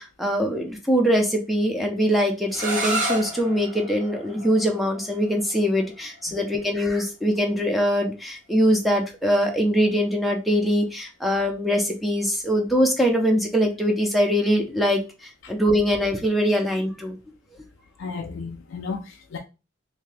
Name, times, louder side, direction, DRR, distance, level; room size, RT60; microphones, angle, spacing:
voice 1, 0.0-17.2, equal, ahead, 0.6 m, -22 dB
sound 1, 2.5-8.2, right 1 dB, 40° right, 1.0 m, -33 dB
voice 2, 18.0-19.4, left 4 dB, 65° left, 0.4 m, -33 dB
2.8 x 2.7 x 3.3 m
head